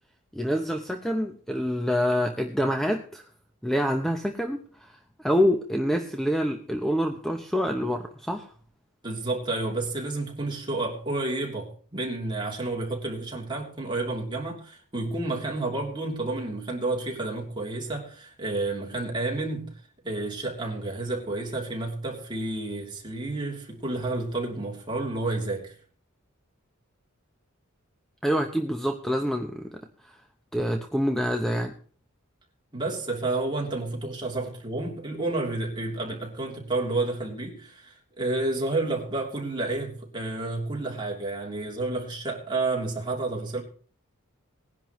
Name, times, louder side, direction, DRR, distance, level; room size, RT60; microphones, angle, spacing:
voice 1, 0.3-3.2 3.6-8.5 28.2-30.1 30.5-31.8, equal, ahead, 0.7 m, -26 dB
voice 2, 9.0-25.7 32.7-43.6, right 2 dB, 20° right, 3.1 m, -30 dB
20.0 x 10.5 x 3.1 m
head